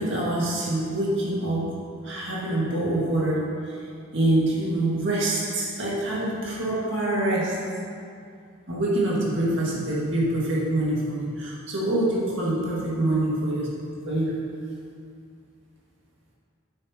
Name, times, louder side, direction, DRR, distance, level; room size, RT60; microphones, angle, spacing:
voice 1, 0.0-1.8 2.0-3.4 4.1-7.6 8.7-13.7 14.1-14.4, right 1 dB, 55° right, -6 dB, 2.0 m, -25 dB
9.8 x 8.2 x 2.9 m, 2.3 s
head